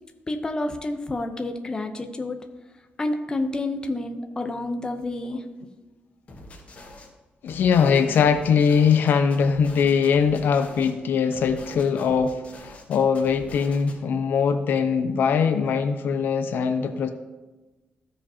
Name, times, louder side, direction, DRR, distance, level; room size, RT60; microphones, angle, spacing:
voice 1, 0.3-2.4 3.0-5.4, left 2 dB, 20° left, 5 dB, 0.7 m, -29 dB
sound 1, 6.3-7.1 7.5-10.9 11.3-14.0, left 1 dB, 40° left, 1.7 m, -44 dB
voice 2, 7.4-17.1, left 6 dB, 75° left, 8 dB, 0.6 m, -21 dB
15.0 x 5.1 x 2.8 m, 1.2 s
cardioid pair, 115°, 3 cm